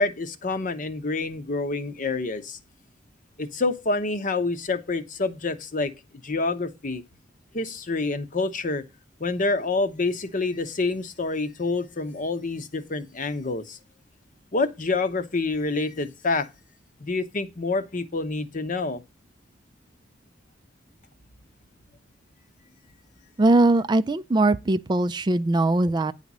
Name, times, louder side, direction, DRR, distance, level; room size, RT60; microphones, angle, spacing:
voice 1, 0.0-2.6 3.4-5.9 6.2-7.0 7.5-8.8 9.2-13.8 14.5-16.5 17.0-19.0, left 3 dB, 45° left, 0.9 m, -27 dB
voice 2, 23.4-26.1, right 2 dB, 25° right, 0.4 m, -21 dB
9.9 x 4.1 x 6.0 m
head